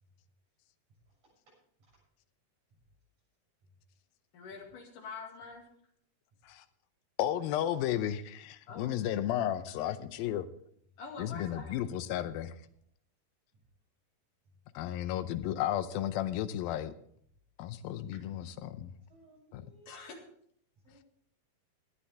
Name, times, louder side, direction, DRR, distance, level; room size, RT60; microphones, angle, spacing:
voice 1, 4.3-5.6 8.7-9.0 11.0-11.8 19.9-20.2, left 4 dB, 65° left, 2 dB, 3.5 m, -45 dB
voice 2, 7.2-10.5 11.2-12.5 14.8-16.9 17.6-18.9 19.5-19.7, left 11 dB, 85° left, 12 dB, 2.5 m, -33 dB
voice 3, 19.1-20.1 20.8-21.1, right 2 dB, 50° right, -4 dB, 8.6 m, -60 dB
18.0 x 10.0 x 3.4 m, 0.66 s
omnidirectional pair, 4.2 m